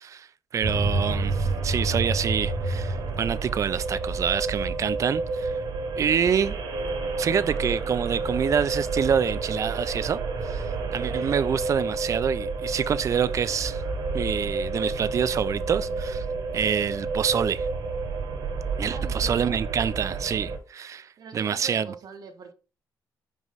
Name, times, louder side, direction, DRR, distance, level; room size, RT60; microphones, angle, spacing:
voice 1, 0.5-5.5 6.0-6.6 7.2-13.8 14.1-16.2 16.5-17.7 18.8-21.9, right 7 dB, 45° right, 0.4 m, -27 dB
sound 1, 0.6-20.6, right 3 dB, 80° right, 1.4 m, -29 dB
voice 2, 18.9-19.6 21.2-22.5, right 5 dB, 60° right, 1.2 m, -42 dB
5.4 x 4.7 x 4.0 m
cardioid pair, 140°, 7 cm